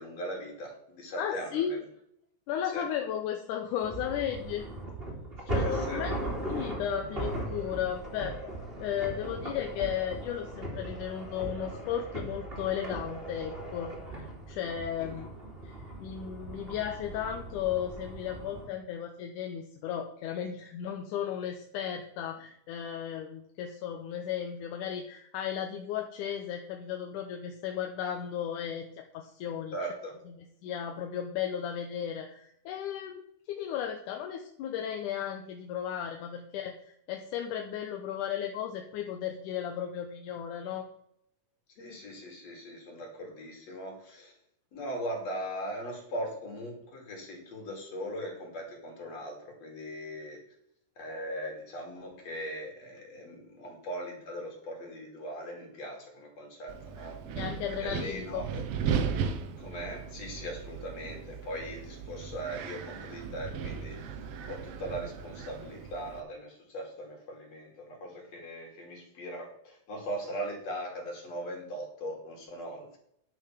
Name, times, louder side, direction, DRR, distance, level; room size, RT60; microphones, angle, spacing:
voice 1, 0.0-1.8 2.7-2.9 5.6-6.0 15.0-15.3 29.7-30.1 41.8-44.3 44.7-50.4 51.0-57.2 57.8-58.6 59.6-64.0 64.5-73.0, equal, 50° left, 0 dB, 3.9 m, -39 dB
voice 2, 1.2-1.7 2.5-4.7 5.5-8.3 8.8-15.3 15.6-29.8 30.3-33.2 33.5-40.9 57.4-58.5, left 9 dB, 75° left, 4 dB, 2.2 m, -35 dB
sound 1, 3.8-18.7, right 1 dB, 15° right, 2.9 m, -38 dB
Wind, 56.7-66.2, right 7 dB, 80° right, 1.3 m, -36 dB
10.5 x 6.5 x 6.0 m, 0.72 s
omnidirectional pair, 3.8 m